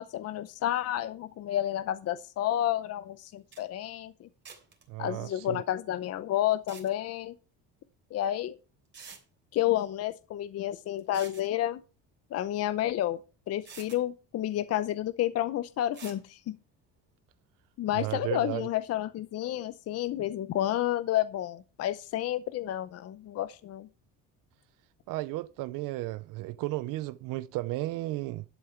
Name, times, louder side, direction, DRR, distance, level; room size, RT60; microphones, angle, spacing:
voice 1, 0.0-4.3 5.0-7.3 8.1-8.6 9.5-11.8 12.3-13.2 13.5-16.6 17.8-23.9, left 12 dB, 50° left, 0.7 m, -30 dB
sound 1, 3.2-3.3 3.5-3.6 4.4-4.8 6.5-6.9 8.2-8.3 8.9-9.2 11.0-11.5 13.0-13.1 13.6-14.0 15.9-16.2, right 5 dB, 35° right, 3.3 m, -48 dB
voice 2, 4.9-5.6 17.9-18.7 25.1-28.4, right 17 dB, 75° right, 0.6 m, -34 dB
11.0 x 8.3 x 4.4 m
cardioid pair, 140°, 33 cm